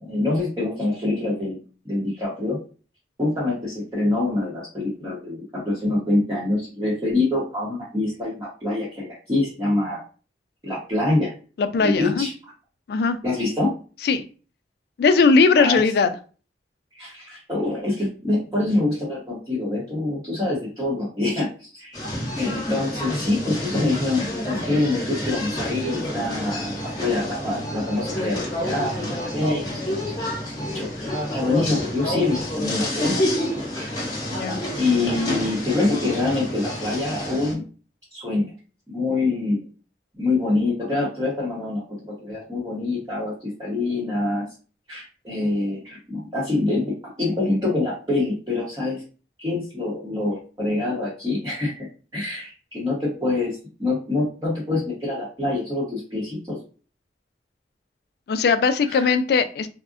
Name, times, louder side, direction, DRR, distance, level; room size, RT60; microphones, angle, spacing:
voice 1, 0.0-1.6 1.8-2.6 3.2-10.0 10.6-11.3 11.8-12.5 13.2-13.7 15.6-15.8 16.9-22.0 22.4-33.2 33.7-34.0 34.8-37.6 38.1-38.5 38.9-39.7 40.2-44.4 44.9-49.0 49.4-51.9 52.1-56.6 58.9-59.1, left 2 dB, 20° right, -7 dB, 0.8 m, -25 dB
voice 2, 11.6-12.3 12.9-13.2 14.0-14.3 15.0-16.1 34.3-34.6 58.3-59.7, left 4 dB, 60° left, 10 dB, 0.3 m, -19 dB
sound 1, 21.9-37.5, left 1 dB, 20° left, 0.9 m, -28 dB
3.5 x 2.0 x 2.4 m, 0.37 s
head